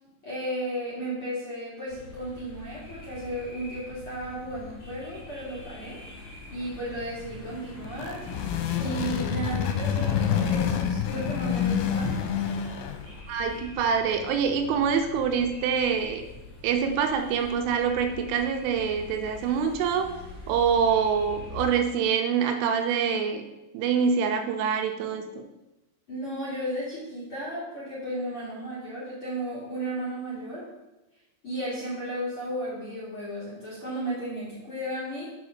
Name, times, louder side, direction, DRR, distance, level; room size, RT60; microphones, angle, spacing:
voice 1, 0.2-6.0 6.5-8.2 8.8-12.2 26.1-30.7 31.4-35.3, right 1 dB, 40° left, -9 dB, 2.2 m, -34 dB
sound 1, 1.9-21.7, left 3 dB, 60° left, 1.4 m, -44 dB
sound 2, 7.8-13.2, left 8 dB, 85° left, 3.2 m, -27 dB
voice 2, 13.3-16.2 16.6-20.1 20.5-23.4 23.7-25.5, right 6 dB, 80° right, 5 dB, 3.2 m, -25 dB
7.0 x 5.1 x 6.4 m, 1.0 s
omnidirectional pair, 5.7 m